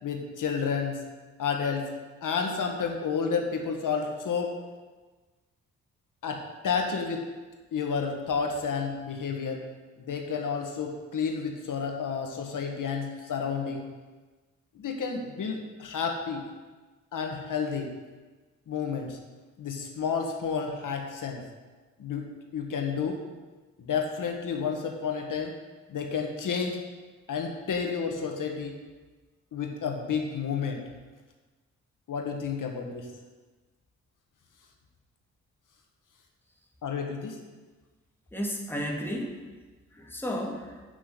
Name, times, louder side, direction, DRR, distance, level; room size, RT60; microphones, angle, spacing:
voice 1, 0.0-1.0 1.4-1.9 2.2-4.5 6.2-7.3 7.7-9.6 10.0-13.9 14.8-16.5 17.1-17.9 18.7-19.2 19.6-21.4 22.0-23.2 23.8-25.5 25.9-26.8 27.3-28.8 29.5-30.8 32.1-33.1 36.8-37.4, left 6 dB, 65° left, 3 dB, 1.5 m, -31 dB
voice 2, 38.3-39.5 39.9-40.8, equal, 5° left, -2 dB, 2.6 m, -33 dB
8.0 x 6.2 x 8.1 m, 1.3 s
supercardioid pair, 45°, 34 cm